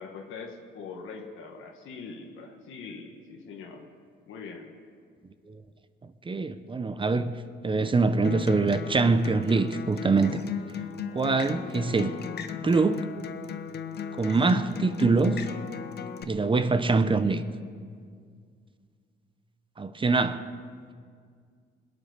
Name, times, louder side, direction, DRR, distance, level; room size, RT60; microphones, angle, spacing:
voice 1, 0.0-3.9 4.3-4.7 11.0-11.4, left 4 dB, 80° left, 1.5 m, -42 dB
voice 2, 6.3-7.3 7.6-10.4 11.1-12.1 12.6-13.0 14.2-15.4 16.3-17.4 19.8-20.4, right 3 dB, 25° right, 0.7 m, -24 dB
Acoustic guitar, 8.2-16.2, left 7 dB, 55° left, 0.9 m, -36 dB
21.5 x 8.7 x 6.6 m
cardioid pair, 90°, 20 cm